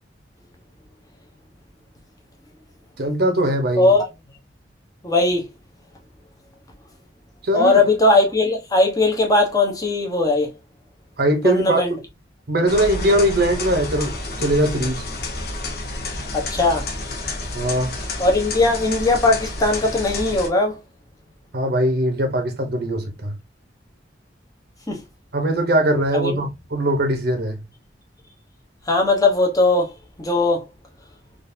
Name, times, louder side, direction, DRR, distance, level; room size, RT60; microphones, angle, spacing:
voice 1, 3.0-3.9 7.4-7.8 11.2-11.8 12.5-15.0 17.5-18.0 21.5-23.4 25.3-27.5, right 1 dB, 60° right, 0.9 m, -21 dB
voice 2, 5.0-5.5 7.5-10.5 11.4-11.9 16.3-16.9 18.2-20.8 24.9-25.0 26.1-26.5 28.9-29.9 30.2-30.7, left 2 dB, 20° left, 0.9 m, -19 dB
sound 1, 12.7-20.5, left 2 dB, 60° left, 1.0 m, -30 dB
3.8 x 2.6 x 2.6 m
head